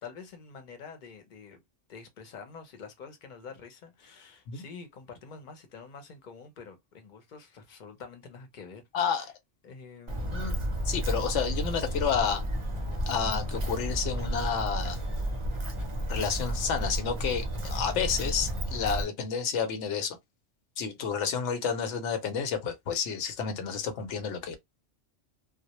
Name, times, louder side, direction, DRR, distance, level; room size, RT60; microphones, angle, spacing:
voice 1, 0.0-1.6 1.9-8.8 9.2-9.3 9.6-10.5, left 5 dB, 50° left, 0.7 m, -47 dB
voice 2, 8.9-9.2 10.3-10.6 10.9-12.4 13.1-15.0 16.1-20.2 20.8-24.6, left 6 dB, 85° left, 0.9 m, -30 dB
Walk footsteps, 10.1-19.0, right 1 dB, 35° right, 0.5 m, -32 dB
2.1 x 2.0 x 2.8 m
omnidirectional pair, 1.2 m